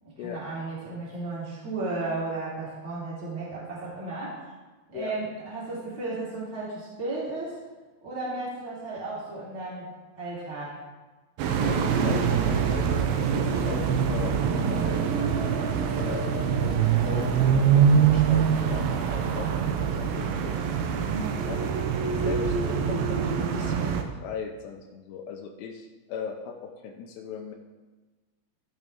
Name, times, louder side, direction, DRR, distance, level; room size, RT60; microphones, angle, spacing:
voice 1, 0.0-4.4 4.9-7.6 8.0-10.7 20.9-21.4, right 2 dB, 20° right, -7 dB, 2.8 m, -34 dB
voice 2, 11.4-15.1 16.0-20.6 21.5-21.7 22.0-27.6, left 6 dB, 80° left, 3 dB, 2.8 m, -39 dB
sound 1, 11.4-24.0, right 7 dB, 90° right, 2.0 m, -24 dB
16.0 x 6.1 x 3.6 m, 1.2 s
omnidirectional pair, 5.1 m